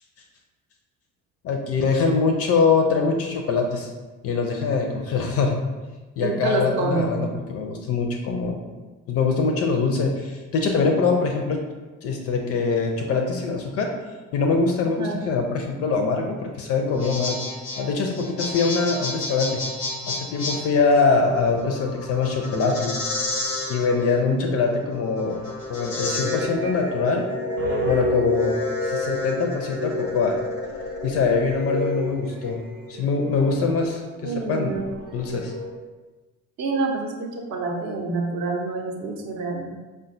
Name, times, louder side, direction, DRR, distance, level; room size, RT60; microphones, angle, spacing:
voice 1, 1.4-3.9 4.2-5.6 6.2-8.6 9.1-11.6 12.0-13.9 14.3-17.4 17.8-19.6 20.1-23.0 23.7-25.4 25.7-27.2 27.9-28.6 28.8-30.4 31.0-32.6 32.9-34.8 35.1-35.5, left 4 dB, 35° left, 3 dB, 0.5 m, -23 dB
voice 2, 6.2-7.2 14.8-15.2 34.2-34.9 36.6-39.7, right 3 dB, 40° right, 0 dB, 0.7 m, -27 dB
sound 1, 16.8-31.5, left 2 dB, 85° left, 0.7 m, -31 dB
sound 2, 21.1-21.9 23.6-24.4 25.2-35.7, left 1 dB, 90° right, 1.0 m, -31 dB
5.1 x 2.2 x 2.6 m, 1.2 s
figure-of-eight pair, 50°, 42 cm